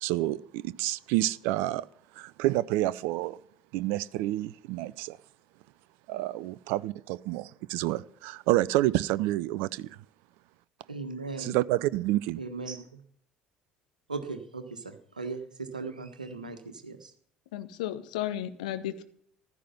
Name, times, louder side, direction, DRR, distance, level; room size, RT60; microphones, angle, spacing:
voice 1, 0.0-1.8 2.2-3.4 3.7-5.2 6.1-9.9 11.4-12.4, right 16 dB, 60° right, 20 dB, 0.5 m, -29 dB
voice 2, 10.9-11.6 12.4-12.8 14.1-17.1, right 3 dB, 85° right, 9 dB, 1.4 m, -38 dB
voice 3, 17.5-19.0, left 12 dB, 65° left, 9 dB, 1.2 m, -34 dB
15.0 x 12.5 x 5.6 m, 0.62 s
figure-of-eight pair, 60°, 4 cm